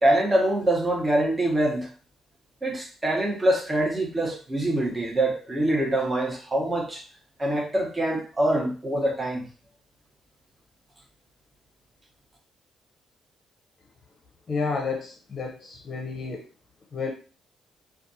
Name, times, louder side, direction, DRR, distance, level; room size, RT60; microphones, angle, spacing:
voice 1, 0.0-1.9 2.6-7.0 7.4-9.4, right 1 dB, 20° right, 0 dB, 0.9 m, -24 dB
voice 2, 14.5-16.4 16.9-17.1, left 4 dB, 40° left, 1 dB, 0.6 m, -30 dB
2.4 x 2.3 x 2.7 m, 0.37 s
cardioid pair, 90°, 0 cm